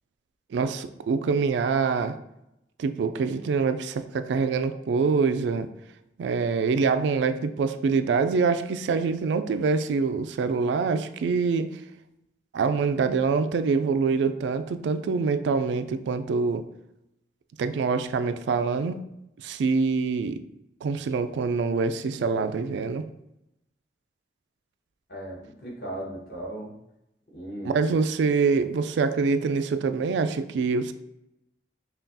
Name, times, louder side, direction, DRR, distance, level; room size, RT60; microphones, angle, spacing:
voice 1, 0.5-2.1 2.8-5.7 6.2-11.8 12.5-16.7 17.6-19.0 19.4-20.4 20.8-23.0 27.6-30.9, right 4 dB, 85° right, 10 dB, 0.3 m, -25 dB
voice 2, 25.1-26.7 27.3-28.0, right 1 dB, 55° left, -4 dB, 1.3 m, -37 dB
5.5 x 2.3 x 2.6 m, 0.86 s
head